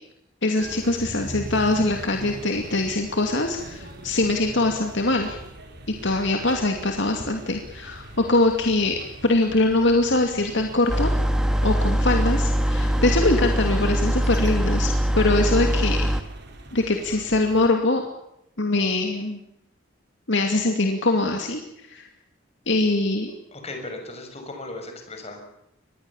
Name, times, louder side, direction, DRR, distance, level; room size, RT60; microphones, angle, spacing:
voice 1, 0.4-5.4 5.9-11.1 11.6-16.1 16.7-18.0 18.6-19.4 20.3-21.6 21.9-22.1 22.7-23.3, left 2 dB, 60° left, 4 dB, 2.6 m, -23 dB
sound 1, 0.6-17.7, right 1 dB, 55° right, 4.7 m, -41 dB
sound 2, 10.9-16.2, equal, 5° right, 1.7 m, -22 dB
voice 2, 23.5-25.5, left 2 dB, 30° left, 4 dB, 6.1 m, -37 dB
25.5 x 20.5 x 7.3 m, 0.81 s
head